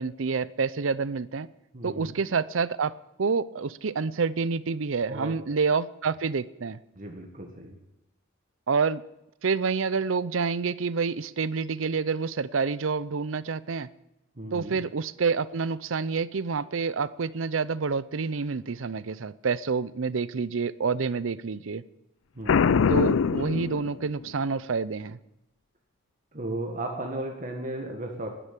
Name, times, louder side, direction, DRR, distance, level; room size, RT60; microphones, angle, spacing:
voice 1, 0.0-1.5 1.8-2.9 3.2-6.8 8.7-9.0 9.4-13.9 14.5-21.8 22.9-25.2, right 5 dB, 70° right, 18 dB, 0.6 m, -28 dB
voice 2, 1.7-2.2 5.1-5.6 6.9-7.7 14.4-14.8 22.3-22.6 26.3-28.3, right 1 dB, 40° right, 2 dB, 1.7 m, -35 dB
Boom, 22.5-24.3, left 6 dB, 75° left, 0.4 m, -23 dB
12.0 x 10.0 x 8.6 m, 0.89 s
head